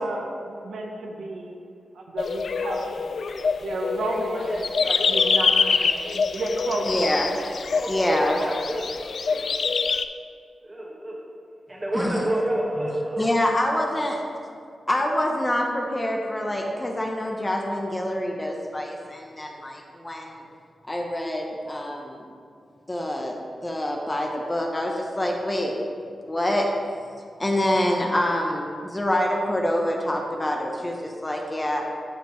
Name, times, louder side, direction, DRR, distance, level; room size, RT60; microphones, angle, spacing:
voice 1, 0.0-1.6 1.9-3.1 3.6-4.5 4.8-7.3, right 2 dB, 85° right, 1 dB, 1.0 m, -32 dB
sound 1, 2.2-10.1, left 5 dB, 60° left, 0.3 m, -25 dB
voice 2, 4.5-4.9 7.1-7.2 7.8-8.9 9.2-9.6 10.6-11.2 11.7-13.2, right 1 dB, 20° right, -3 dB, 1.6 m, -29 dB
voice 3, 6.8-7.3 7.9-8.4 11.9-12.3 12.8-12.9 13.2-14.2 14.9-20.4 20.9-22.3 22.9-25.7 26.3-26.7 27.4-31.8, left 1 dB, 20° left, 0 dB, 0.9 m, -26 dB
13.5 x 5.0 x 3.1 m, 2.3 s
wide cardioid pair, 110°, 0 cm